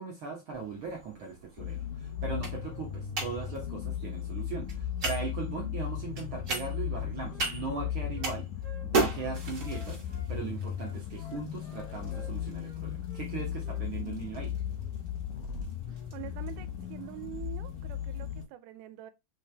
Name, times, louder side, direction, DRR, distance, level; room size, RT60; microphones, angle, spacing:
voice 1, 0.0-8.5 8.8-14.5, right 5 dB, 65° right, 1.3 m, -39 dB
sound 1, 0.5-18.4, right 3 dB, 45° right, 1.2 m, -39 dB
sound 2, 1.6-18.5, left 10 dB, 85° left, 2.2 m, -36 dB
Wind instrument woodwind instrument, 6.8-10.3 10.7-12.8 13.1-13.3 13.6-13.8 14.1-14.3, left 1 dB, 65° left, 0.8 m, -53 dB
voice 2, 16.1-19.1, right 14 dB, 85° right, 2.1 m, -45 dB
4.7 x 3.2 x 3.2 m
omnidirectional pair, 3.7 m